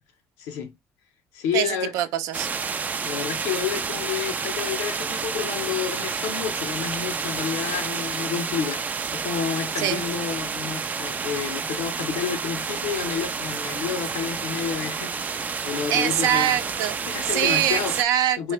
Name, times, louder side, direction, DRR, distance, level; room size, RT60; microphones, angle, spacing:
voice 1, 0.4-0.7 1.3-1.9 3.0-8.8 9.1-15.4 15.6-16.6 17.1-18.0 18.4-18.5, left 8 dB, 85° left, 1.1 m, -30 dB
voice 2, 1.5-2.5 9.8-10.0 15.9-17.0 17.2-18.5, right 11 dB, 75° right, 0.6 m, -23 dB
sound 1, 2.3-18.0, right 5 dB, 30° right, 0.4 m, -30 dB
3.1 x 2.8 x 3.1 m
supercardioid pair, 95°, 6 cm